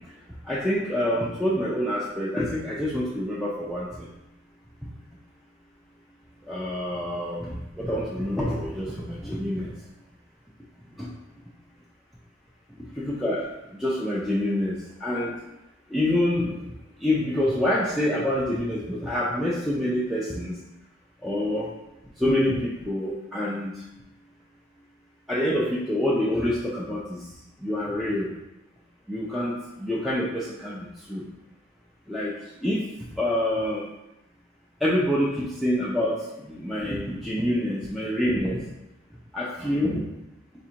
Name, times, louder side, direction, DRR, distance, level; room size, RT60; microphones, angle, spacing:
voice 1, 0.4-4.1 6.5-9.7 11.0-11.1 13.0-15.4 15.9-16.7 17.0-20.5 21.2-21.7 22.2-23.7 25.3-27.2 27.6-28.3 29.1-31.3 32.1-32.3 32.6-32.8 33.1-33.8 34.8-38.6 39.3-40.0, left 1 dB, ahead, -7 dB, 0.3 m, -26 dB
4.2 x 2.5 x 2.8 m, 0.92 s
head